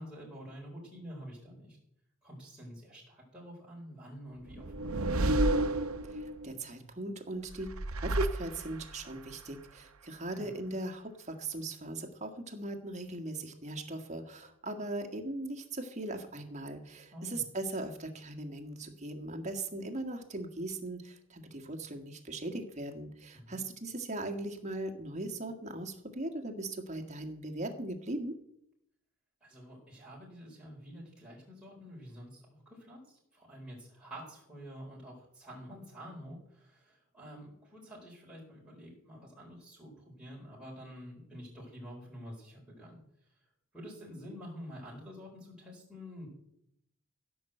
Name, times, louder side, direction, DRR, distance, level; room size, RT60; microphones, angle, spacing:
voice 1, 0.0-1.8 2.2-5.5 10.3-10.5 17.1-17.4 23.3-23.6 29.4-43.3 43.7-46.3, equal, 5° right, -6 dB, 4.4 m, -48 dB
sound 1, 4.5-6.5 7.5-9.0, right 1 dB, 90° right, 0.9 m, -31 dB
voice 2, 6.0-28.4, right 2 dB, 35° right, 5 dB, 1.7 m, -39 dB
15.5 x 6.1 x 7.8 m, 0.75 s
head